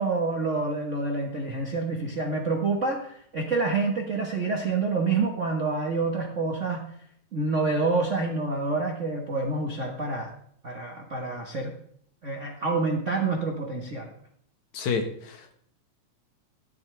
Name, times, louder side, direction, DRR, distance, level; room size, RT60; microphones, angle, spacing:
voice 1, 0.0-6.9 7.3-10.3 10.6-11.7 12.2-14.1, right 3 dB, 50° right, 1 dB, 0.9 m, -27 dB
voice 2, 14.7-15.5, left 5 dB, 70° left, 6 dB, 2.6 m, -29 dB
14.5 x 11.5 x 3.4 m, 0.65 s
omnidirectional pair, 3.4 m